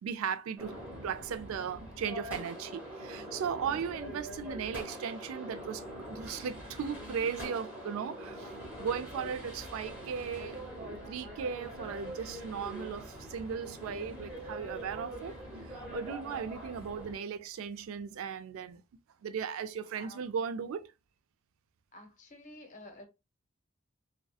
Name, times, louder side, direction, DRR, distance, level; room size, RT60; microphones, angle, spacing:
voice 1, 0.0-5.8 6.1-8.5 8.8-15.4 15.6-18.8 19.2-20.9, right 7 dB, 80° right, 0.3 m, -37 dB
sound 1, 0.6-17.1, equal, 10° right, 1.2 m, -44 dB
voice 2, 21.9-23.1, left 1 dB, 35° left, 0.7 m, -50 dB
2.7 x 2.1 x 2.2 m
head